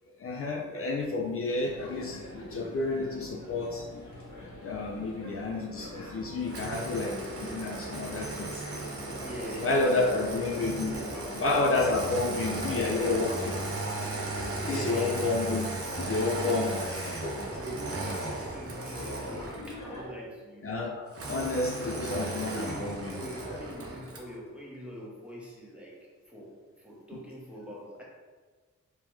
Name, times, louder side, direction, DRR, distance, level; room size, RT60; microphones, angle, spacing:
voice 1, 0.2-2.2 2.5-3.8 4.6-8.6 9.6-11.0 11.4-13.6 14.7-15.7 16.0-17.3 20.6-23.2 27.1-27.2, left 3 dB, 50° left, 0 dB, 0.5 m, -30 dB
sound 1, 1.6-20.1, left 1 dB, 75° left, 1.0 m, -45 dB
Engine starting, 6.5-19.9 21.1-24.3, right 2 dB, 50° right, 0.7 m, -36 dB
voice 2, 9.2-10.3 10.8-12.1 14.6-15.3 16.4-16.9 17.6-20.7 21.2-21.5 21.8-22.2 22.4-26.0 26.3-28.0, equal, 5° right, -5 dB, 1.2 m, -42 dB
3.3 x 3.2 x 3.1 m, 1.4 s
cardioid pair, 65°, 30 cm